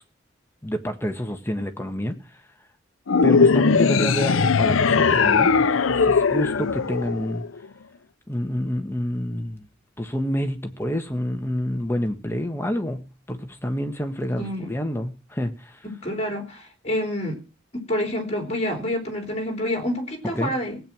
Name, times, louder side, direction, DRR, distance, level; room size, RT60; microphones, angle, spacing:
voice 1, 0.6-2.2 3.2-7.4 8.3-9.7 10.0-15.8 20.3-20.5, equal, 10° left, 5 dB, 1.4 m, -28 dB
sound 1, 3.1-7.6, left 5 dB, 85° left, 0.7 m, -19 dB
voice 2, 14.4-14.7 15.8-17.4 17.7-20.8, left 1 dB, 30° left, 4 dB, 3.5 m, -28 dB
17.5 x 8.9 x 6.1 m, 0.34 s
head